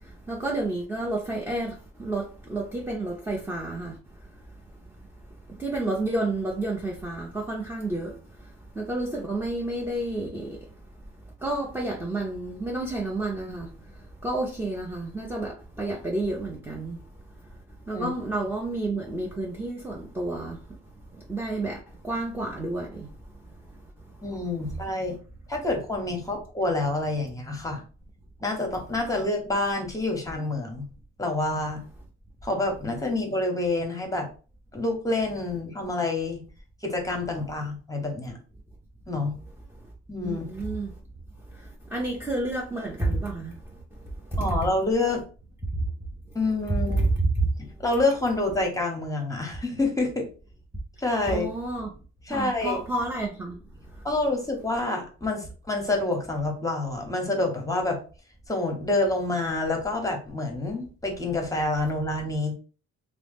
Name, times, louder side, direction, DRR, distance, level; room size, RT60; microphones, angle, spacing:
voice 1, 0.0-4.0 5.6-10.7 11.4-13.7 14.2-17.0 17.9-20.6 21.1-23.1 40.2-40.9 41.5-43.6 44.3-44.4 45.7-45.9 51.3-51.9 52.3-53.6, right 2 dB, 5° right, 0.6 m, -30 dB
voice 2, 24.2-25.2 25.5-27.8 28.4-30.9 31.2-31.8 32.4-34.3 34.7-36.4 36.8-38.4 39.1-39.3 40.1-40.4 44.4-45.2 46.3-47.1 47.8-50.3 51.0-51.5 52.2-52.8 54.0-58.0 58.5-62.5, left 2 dB, 10° left, 0.9 m, -27 dB
2.7 x 2.0 x 3.4 m
cardioid pair, 90°, 30 cm